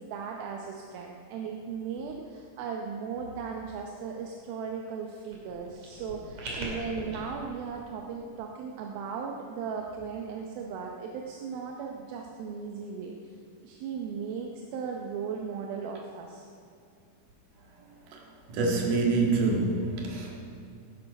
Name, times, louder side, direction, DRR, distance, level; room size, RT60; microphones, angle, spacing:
voice 1, 0.0-13.3 13.6-16.5, right 6 dB, 80° right, 1 dB, 2.7 m, -37 dB
sound 1, 5.2-7.2, right 1 dB, 50° right, 3.8 m, -40 dB
voice 2, 18.5-20.4, right 3 dB, 65° right, -1 dB, 3.3 m, -26 dB
17.0 x 11.0 x 5.3 m, 2.4 s
omnidirectional pair, 4.3 m